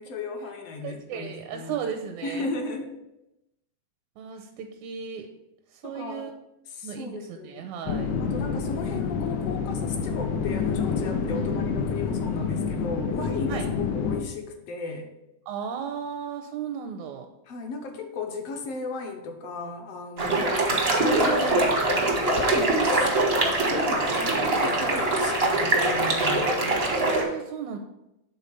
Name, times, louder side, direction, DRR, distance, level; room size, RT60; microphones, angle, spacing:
voice 1, 0.0-1.8 2.2-3.0 5.8-6.3 6.7-7.7 8.2-15.1 17.5-20.6 20.9-26.5, left 4 dB, 70° left, 4 dB, 1.7 m, -35 dB
voice 2, 0.8-2.5 4.2-5.3 5.7-6.3 6.8-8.1 11.3-11.7 13.5-13.6 15.5-17.3 20.3-20.5 26.9-27.8, right 7 dB, 80° right, 4 dB, 1.9 m, -35 dB
sound 1, 7.9-14.2, left 5 dB, 90° left, 2.1 m, -28 dB
sound 2, 20.2-27.2, right 2 dB, 55° right, 0.6 m, -23 dB
8.3 x 3.8 x 5.5 m, 0.89 s
omnidirectional pair, 3.4 m